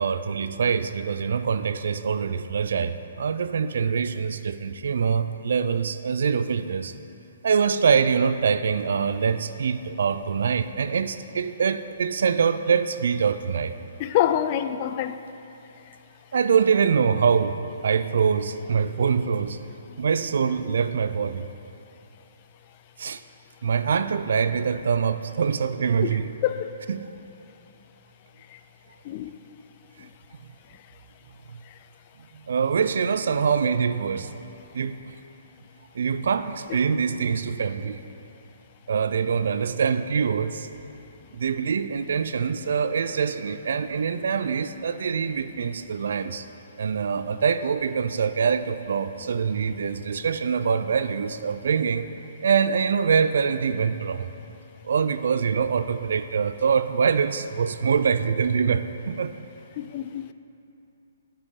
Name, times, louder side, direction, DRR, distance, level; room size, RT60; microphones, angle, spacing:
voice 1, 0.0-6.9 7.4-13.7 16.3-19.6 20.0-21.5 23.0-23.2 23.6-26.3 26.9-27.1 31.5-31.6 32.3-35.0 35.9-38.0 38.9-40.7 41.3-46.5 46.8-52.1 52.4-54.3 54.8-59.3, right 6 dB, 70° right, 0.4 m, -24 dB
voice 2, 14.0-15.2 26.0-26.1 26.4-26.7 28.5-28.6 29.0-29.3 30.0-30.1 59.8-60.3, left 11 dB, 35° left, 0.3 m, -26 dB
10.0 x 6.7 x 3.7 m
hypercardioid pair, 150°, 0 cm